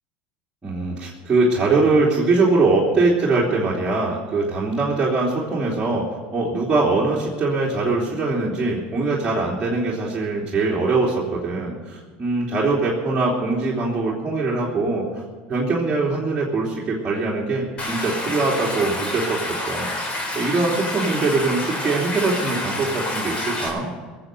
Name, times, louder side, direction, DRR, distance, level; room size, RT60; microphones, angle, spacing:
voice 1, 0.6-6.0 6.3-15.2 15.5-23.9, right 3 dB, 20° right, -6 dB, 3.1 m, -22 dB
Stream, 17.8-23.7, left 1 dB, 30° left, 4.6 m, -28 dB
18.5 x 7.6 x 7.9 m, 1.4 s
supercardioid pair, 95°, 4 cm